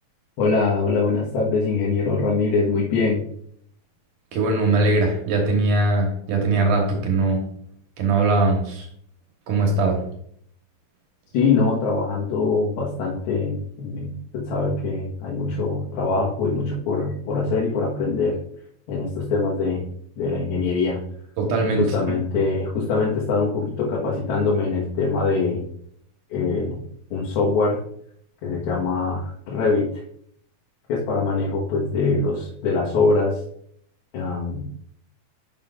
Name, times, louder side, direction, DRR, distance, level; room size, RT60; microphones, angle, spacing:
voice 1, 0.4-3.2 11.3-18.4 18.9-19.8 20.2-21.0 21.8-25.6 26.3-26.8 27.1-27.8 28.4-29.9 30.9-33.4 34.1-34.7, left 4 dB, 80° left, -5 dB, 3.2 m, -23 dB
voice 2, 4.3-7.4 8.0-8.9 9.5-10.0 21.4-22.0, right 3 dB, 65° right, 1 dB, 2.7 m, -21 dB
10.5 x 7.4 x 2.5 m, 0.66 s
omnidirectional pair, 4.3 m